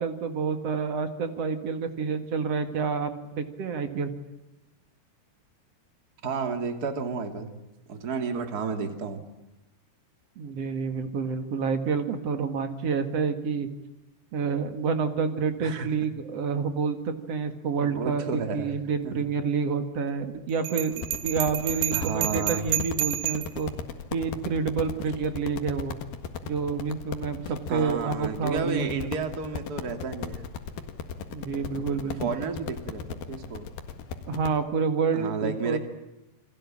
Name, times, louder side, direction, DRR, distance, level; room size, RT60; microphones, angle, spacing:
voice 1, 0.0-4.1 10.4-13.7 14.3-23.7 24.1-26.0 26.4-29.1 31.3-32.4 34.3-35.8, right 5 dB, 45° right, 8 dB, 2.5 m, -28 dB
voice 2, 6.2-7.5 7.9-9.2 15.6-16.1 17.8-18.7 19.0-19.1 21.9-22.6 27.7-30.5 32.2-33.7 35.1-35.8, right 5 dB, 25° right, 7 dB, 2.5 m, -31 dB
Bell, 20.6-23.6, right 15 dB, 90° right, 3.5 m, -30 dB
sound 1, 20.9-34.6, left 7 dB, 65° left, 3.4 m, -37 dB
29.0 x 22.0 x 8.8 m, 0.96 s
omnidirectional pair, 4.7 m